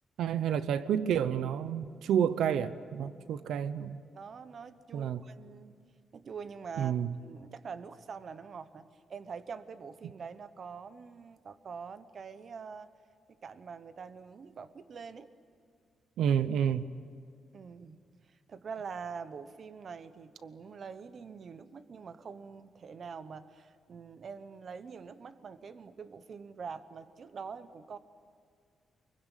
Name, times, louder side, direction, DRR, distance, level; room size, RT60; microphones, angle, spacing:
voice 1, 0.2-4.0 4.9-5.2 6.8-7.1 16.2-16.9, right 9 dB, 90° right, 14 dB, 0.8 m, -29 dB
voice 2, 4.1-5.8 6.1-6.9 7.2-12.9 13.4-15.3 17.5-18.0 18.3-28.0, right 5 dB, 40° right, 13 dB, 0.9 m, -45 dB
24.5 x 22.5 x 9.1 m, 2.1 s
wide cardioid pair, 165°, 0 cm